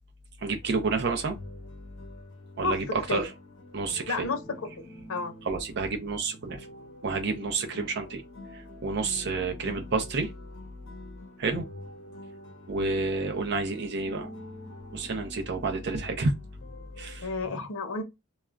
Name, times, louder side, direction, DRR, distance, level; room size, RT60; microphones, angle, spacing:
voice 1, 0.4-1.4 2.6-3.3 3.7-4.3 5.5-6.7 7.0-8.2 8.5-10.3 11.4-11.7 12.7-14.3 14.9-16.3 17.0-17.2, right 3 dB, 50° right, 0.5 m, -29 dB
sound 1, 0.6-17.2, left 1 dB, 65° left, 0.9 m, -47 dB
voice 2, 4.1-4.6 5.1-5.3 17.2-18.0, left 4 dB, 85° left, 0.7 m, -31 dB
2.3 x 2.0 x 3.3 m
head